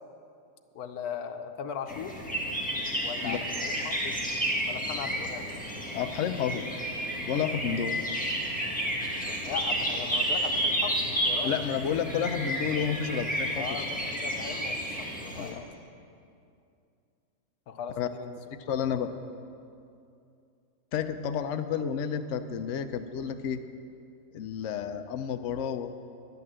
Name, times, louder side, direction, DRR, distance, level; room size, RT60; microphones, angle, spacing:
voice 1, 0.7-2.2 3.0-4.2 4.7-5.5 9.2-11.5 13.6-15.6 17.7-18.3, left 7 dB, 85° left, 8 dB, 1.2 m, -38 dB
sound 1, 1.9-15.5, right 1 dB, 5° left, 1.6 m, -31 dB
voice 2, 5.9-6.8 7.3-8.0 11.4-13.9 15.4-15.6 18.0-18.1 18.5-19.1 20.9-23.6 24.3-25.9, left 8 dB, 65° left, 8 dB, 0.9 m, -31 dB
11.0 x 10.5 x 7.5 m, 2.5 s
omnidirectional pair, 1.5 m